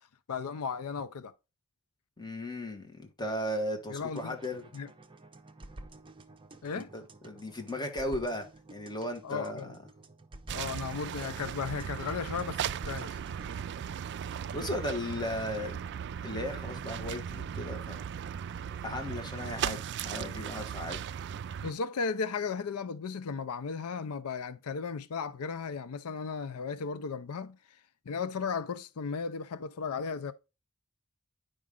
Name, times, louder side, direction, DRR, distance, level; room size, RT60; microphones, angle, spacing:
voice 1, 0.3-1.3 3.9-4.4 4.7-4.9 6.6-6.9 9.2-9.7 10.5-13.2 21.6-27.8 28.1-30.3, left 5 dB, 80° left, 0.5 m, -35 dB
voice 2, 2.2-4.7 6.7-9.8 14.5-15.8 16.2-18.0 18.8-21.0, left 1 dB, 20° left, 1.7 m, -36 dB
sound 1, 4.2-13.6, right 2 dB, 25° right, 0.8 m, -51 dB
sound 2, 10.5-21.7, right 8 dB, 55° right, 0.4 m, -37 dB
9.5 x 5.1 x 3.7 m
head